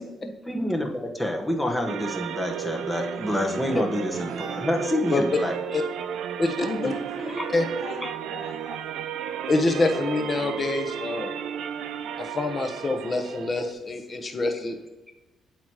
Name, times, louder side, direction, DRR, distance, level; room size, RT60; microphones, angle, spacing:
voice 1, 0.0-5.5, left 1 dB, 5° left, 1 dB, 1.2 m, -28 dB
sound 1, 1.9-13.7, right 8 dB, 80° right, 0.4 m, -33 dB
sound 2, 4.2-6.0, right 4 dB, 60° right, 0.8 m, -42 dB
voice 2, 6.6-8.6, left 3 dB, 45° left, -5 dB, 1.3 m, -35 dB
voice 3, 9.5-11.3 12.2-14.8, left 2 dB, 30° left, 5 dB, 1.0 m, -25 dB
8.6 x 3.0 x 4.9 m, 1.1 s
cardioid pair, 90°, 0 cm